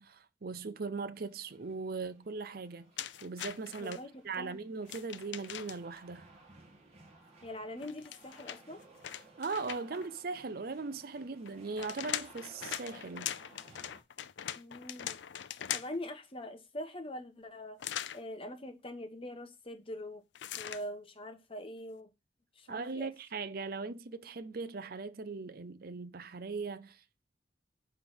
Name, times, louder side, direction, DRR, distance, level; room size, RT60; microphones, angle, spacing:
voice 1, 0.0-2.9 3.2-4.0 4.2-6.3 9.4-13.3 22.7-27.2, right 4 dB, 55° right, 0.6 m, -39 dB
sound 1, 1.1-14.0, right 3 dB, 35° right, 2.0 m, -59 dB
sound 2, 3.0-4.0 4.8-6.0 7.8-10.1 11.5-16.1 17.8-18.2 20.3-20.9, left 11 dB, 85° left, 0.5 m, -41 dB
voice 2, 3.8-4.6 7.4-8.8 14.5-15.2 15.7-17.8 18.1-20.2 20.6-22.1 22.6-23.1, left 1 dB, 30° left, 1.2 m, -43 dB
8.8 x 3.5 x 6.0 m
head